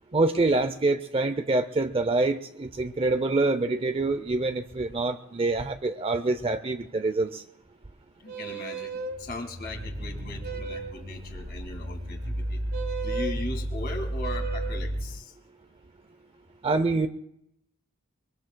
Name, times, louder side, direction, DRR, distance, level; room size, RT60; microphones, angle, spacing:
voice 1, 0.1-7.4 16.6-17.1, right 3 dB, 25° right, 9 dB, 0.5 m, -26 dB
voice 2, 8.2-12.6 13.0-15.3, left 2 dB, 45° left, 3 dB, 1.9 m, -39 dB
sound 1, 8.3-9.2 10.4-11.0 12.7-13.4 14.2-14.8, right 5 dB, 50° right, 1.2 m, -35 dB
sound 2, 9.0-15.1, equal, 80° right, 6.4 m, -33 dB
23.5 x 22.0 x 2.2 m, 0.78 s
head